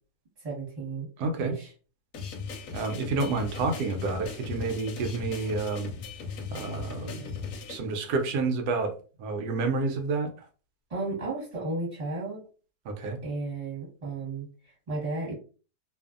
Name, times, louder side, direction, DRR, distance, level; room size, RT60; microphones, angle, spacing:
voice 1, 0.4-1.1 1.4-1.7 10.9-12.4 13.2-15.4, right 3 dB, 25° right, 1.1 m, -34 dB
voice 2, 1.2-1.5 2.7-5.9 6.5-7.4 7.7-10.3 12.9-13.2, right 3 dB, 90° right, 1.2 m, -29 dB
sound 1, 2.1-7.8, left 5 dB, 70° left, 0.9 m, -38 dB
2.6 x 2.5 x 2.4 m
omnidirectional pair, 1.7 m